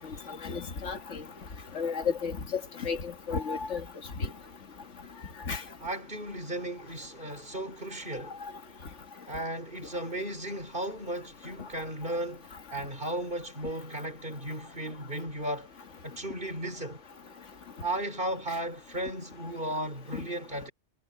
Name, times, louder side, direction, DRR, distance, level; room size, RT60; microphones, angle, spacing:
voice 1, 0.4-1.2 1.8-3.0 3.3-3.8 5.5-5.6 20.1-20.2, left 5 dB, 75° left, 1.9 m, -32 dB
voice 2, 5.8-8.4 9.2-15.7 16.0-17.0 17.8-20.7, right 1 dB, 45° right, 5.2 m, -35 dB
omnidirectional pair, 1.3 m